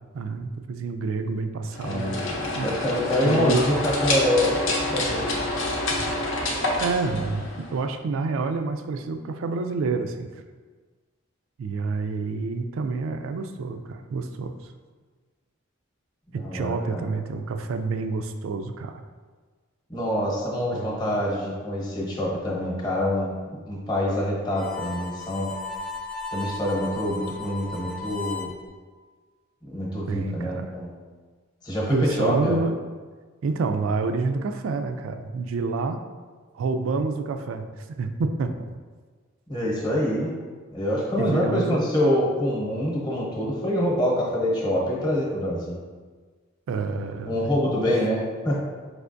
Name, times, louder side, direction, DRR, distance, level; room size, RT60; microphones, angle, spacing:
voice 1, 0.1-2.2 2.5-2.7 3.2-3.7 6.8-10.3 11.6-14.5 16.3-19.0 30.1-30.7 31.9-32.8 33.4-36.0 36.5-38.5 41.2-41.8 46.7-47.4, right 4 dB, 75° right, 8 dB, 0.3 m, -28 dB
sound 1, 1.7-7.9, left 2 dB, 65° left, 0.7 m, -27 dB
voice 2, 1.8-4.6 4.9-5.4 16.4-17.0 19.9-25.5 26.3-28.5 29.6-30.9 31.6-32.5 39.5-40.3 40.7-45.8 47.3-48.6, left 1 dB, 20° left, -4 dB, 0.9 m, -25 dB
Harmonica, 24.5-28.6, left 3 dB, 5° left, 0.4 m, -35 dB
4.9 x 3.4 x 2.5 m, 1.5 s
head